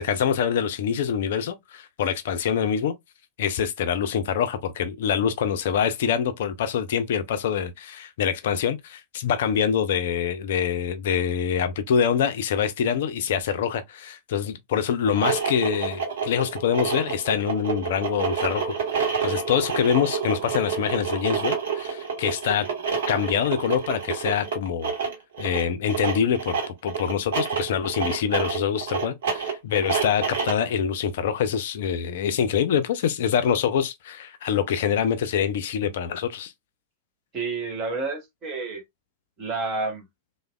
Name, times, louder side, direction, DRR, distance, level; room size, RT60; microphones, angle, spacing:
voice 1, 0.0-2.9 3.4-22.7 23.1-24.9 25.4-26.6 26.8-36.5, left 8 dB, 55° left, 0.4 m, -25 dB
sound 1, 15.0-30.7, right 6 dB, 60° right, 0.9 m, -28 dB
voice 2, 37.3-38.8 39.4-40.0, right 3 dB, 35° right, 1.2 m, -29 dB
3.2 x 2.0 x 2.3 m
figure-of-eight pair, 90°, 0 cm